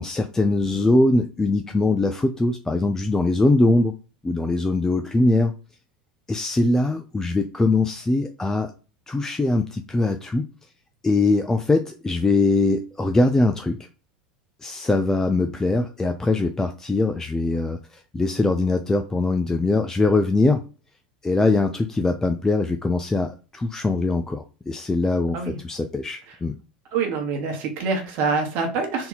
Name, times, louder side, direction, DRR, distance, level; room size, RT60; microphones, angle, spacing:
voice 1, 0.0-3.9 4.2-5.5 6.3-8.7 9.1-10.5 11.0-13.8 14.6-20.6 21.2-26.6, left 2 dB, 10° left, 6 dB, 0.4 m, -22 dB
voice 2, 26.9-29.1, right 4 dB, 50° right, 2 dB, 1.1 m, -25 dB
3.7 x 2.7 x 4.0 m, 0.35 s
figure-of-eight pair, 80°, 4 cm